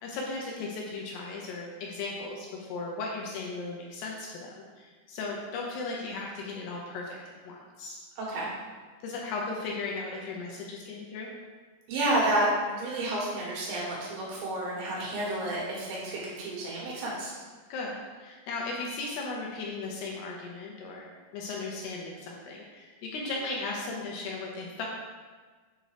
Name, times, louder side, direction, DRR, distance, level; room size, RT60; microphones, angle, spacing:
voice 1, 0.0-7.2 7.4-8.0 9.0-11.3 17.7-24.9, left 3 dB, 75° left, -2 dB, 2.6 m, -36 dB
voice 2, 8.2-8.5 11.9-17.3, right 1 dB, 75° right, -4 dB, 3.9 m, -30 dB
7.8 x 3.8 x 4.9 m, 1.4 s
omnidirectional pair, 5.3 m